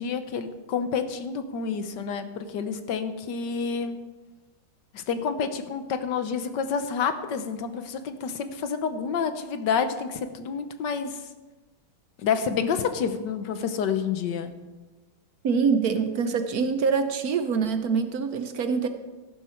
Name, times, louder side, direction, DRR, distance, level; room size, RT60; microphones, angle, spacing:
voice 1, 0.0-4.0 4.9-11.2 12.2-14.5, left 6 dB, 65° left, 10 dB, 1.5 m, -29 dB
voice 2, 15.4-18.9, right 5 dB, 60° right, 8 dB, 1.1 m, -25 dB
14.0 x 11.5 x 4.5 m, 1.2 s
omnidirectional pair, 2.1 m